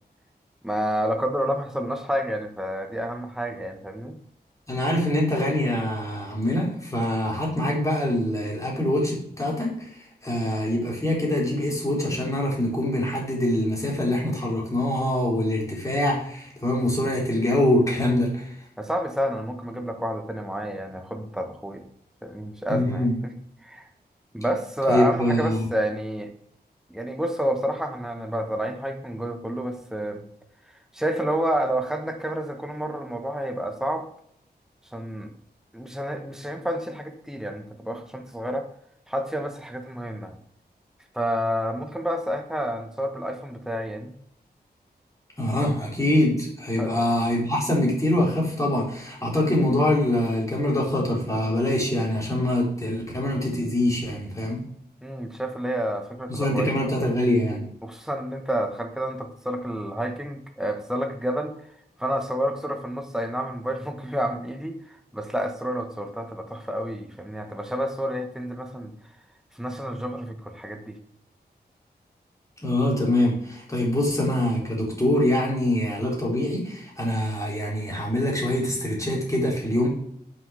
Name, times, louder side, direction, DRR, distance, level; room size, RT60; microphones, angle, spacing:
voice 1, 0.6-4.2 18.8-21.9 22.2-23.3 23.6-23.9 24.3-26.3 26.9-30.2 30.9-34.1 34.9-35.3 35.7-38.7 39.1-40.4 41.1-44.1 46.8-46.9 55.0-56.9 57.8-61.5 62.0-68.9 69.5-71.0, equal, 5° right, 5 dB, 1.3 m, -29 dB
voice 2, 4.7-18.5 22.7-23.2 24.9-25.6 45.4-54.6 56.3-57.6 72.6-79.9, left 1 dB, 20° left, -4 dB, 4.1 m, -24 dB
7.5 x 6.4 x 6.7 m, 0.70 s
wide cardioid pair, 85°, 17 cm